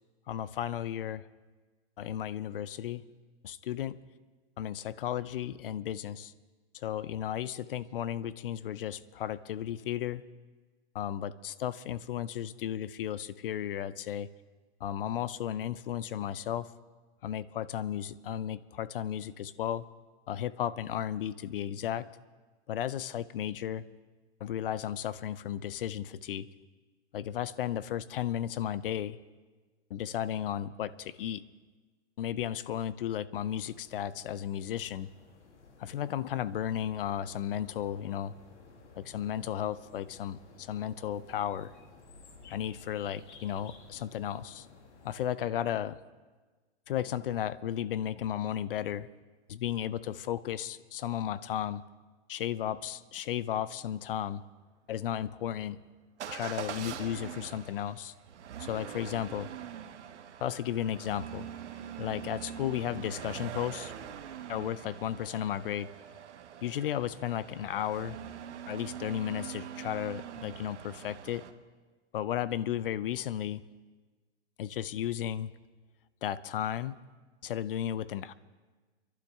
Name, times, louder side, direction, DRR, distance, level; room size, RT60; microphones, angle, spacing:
voice 1, 0.3-1.2 2.0-3.0 3.4-4.0 4.6-6.3 6.7-10.2 10.9-14.3 14.8-16.7 17.2-19.9 20.3-22.1 22.7-23.8 24.4-26.5 27.1-29.2 29.9-31.4 32.2-35.1 35.8-38.3 39.0-41.7 42.5-44.7 45.0-46.0 46.9-49.1 49.5-51.8 52.3-54.4 54.9-55.8 56.3-58.1 58.6-59.5 60.4-61.5 62.0-63.9 64.5-65.9 66.6-68.2 68.7-71.4 72.1-73.6 74.6-75.5 76.2-77.0 77.4-78.3, left 10 dB, 55° left, 17 dB, 0.5 m, -34 dB
sound 1, 33.5-45.3, left 3 dB, 85° left, 2.1 m, -55 dB
Motor vehicle (road) / Engine starting / Accelerating revving vroom, 56.2-71.5, right 9 dB, 85° right, 1.1 m, -43 dB
25.5 x 11.5 x 3.5 m, 1.3 s
hypercardioid pair, 170°, 34 cm